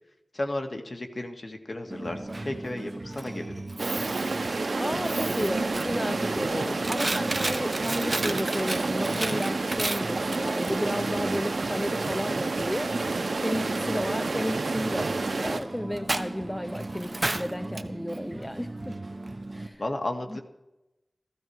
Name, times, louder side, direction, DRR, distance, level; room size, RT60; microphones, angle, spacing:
voice 1, 0.3-3.5 6.5-6.8 19.8-20.4, left 1 dB, 50° left, 3 dB, 2.0 m, -33 dB
Coin (dropping), 1.9-19.7, right 2 dB, 45° right, 1.0 m, -35 dB
sound 1, 3.8-15.6, right 3 dB, 75° right, 1.0 m, -29 dB
voice 2, 4.8-6.5 6.9-13.0 13.4-15.1 15.4-19.0 19.5-19.8 20.3-20.4, equal, 10° left, 9 dB, 0.7 m, -33 dB
15.5 x 15.0 x 4.8 m, 0.93 s
wide cardioid pair, 70°, 0 cm